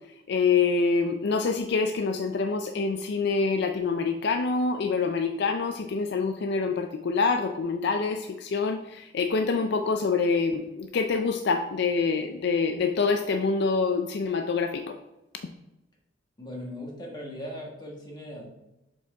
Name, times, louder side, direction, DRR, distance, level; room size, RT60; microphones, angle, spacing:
voice 1, 0.3-15.0, left 4 dB, 65° left, 6 dB, 0.4 m, -26 dB
voice 2, 16.4-18.5, equal, 25° left, -2 dB, 1.4 m, -39 dB
7.1 x 4.5 x 3.4 m, 0.92 s
head